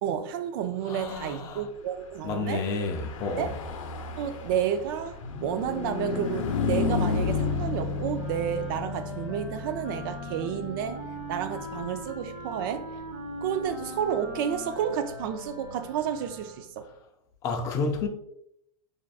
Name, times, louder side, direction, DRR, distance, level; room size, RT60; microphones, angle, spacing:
voice 1, 0.0-2.7 3.4-3.5 4.2-11.0 11.3-12.9 13.4-16.9, right 9 dB, 45° right, 0.4 m, -31 dB
voice 2, 0.8-1.7 2.2-3.5 17.4-18.1, left 3 dB, 20° left, 0.4 m, -30 dB
Car passing by / Truck, 2.4-16.2, left 4 dB, 90° left, 0.6 m, -34 dB
Wind instrument woodwind instrument, 8.1-16.8, equal, 10° right, 0.8 m, -41 dB
4.5 x 2.6 x 2.3 m
supercardioid pair, 165°, 16 cm